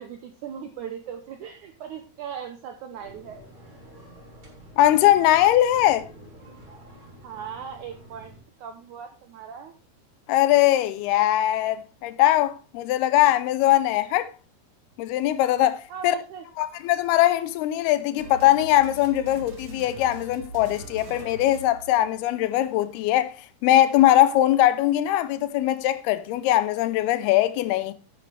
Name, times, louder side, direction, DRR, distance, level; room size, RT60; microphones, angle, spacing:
voice 1, 0.0-3.4 7.2-9.7 15.9-16.5, right 7 dB, 80° right, 1.8 m, -38 dB
sound 1, 3.0-8.4, equal, 35° right, 3.8 m, -47 dB
voice 2, 4.8-6.1 10.3-14.3 15.0-16.2 16.6-23.3 23.6-27.9, left 13 dB, 80° left, 2.6 m, -21 dB
sound 2, 18.2-22.5, right 3 dB, 50° right, 2.5 m, -42 dB
10.0 x 9.3 x 3.3 m
omnidirectional pair, 4.6 m